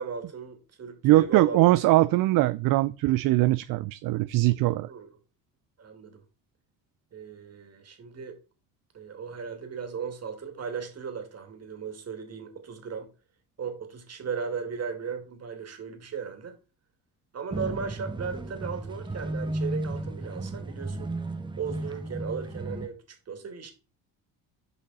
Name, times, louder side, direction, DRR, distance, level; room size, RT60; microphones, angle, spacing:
voice 1, 0.0-1.8 4.9-5.1 5.8-6.2 7.1-8.4 8.9-13.1 13.6-16.6 17.3-21.1 21.6-23.7, right 6 dB, 40° right, 2.3 m, -36 dB
voice 2, 1.0-4.9, right 17 dB, 60° right, 0.5 m, -21 dB
sound 1, 17.5-22.9, right 2 dB, 10° right, 0.8 m, -34 dB
6.5 x 5.1 x 4.2 m
supercardioid pair, 80°, 38 cm